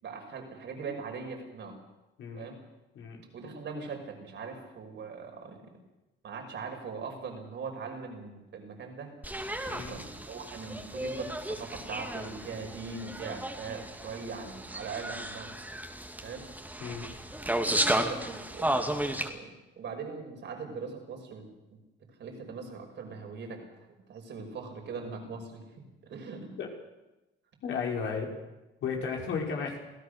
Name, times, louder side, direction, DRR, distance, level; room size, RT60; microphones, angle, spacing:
voice 1, 0.0-1.7 2.3-2.6 3.3-5.6 6.2-9.1 9.9-15.5 16.2-16.5 17.5-21.8 22.2-25.6 26.0-26.5, right 5 dB, 65° right, 3 dB, 5.8 m, -41 dB
sound 1, 9.2-19.3, right 1 dB, 10° right, 2.5 m, -34 dB
voice 2, 9.7-10.0 16.8-17.1 26.6-26.7 27.6-28.3 28.8-29.8, left 5 dB, 75° left, 0 dB, 5.1 m, -34 dB
26.0 x 16.0 x 6.8 m, 1.0 s
cardioid pair, 90°, 20 cm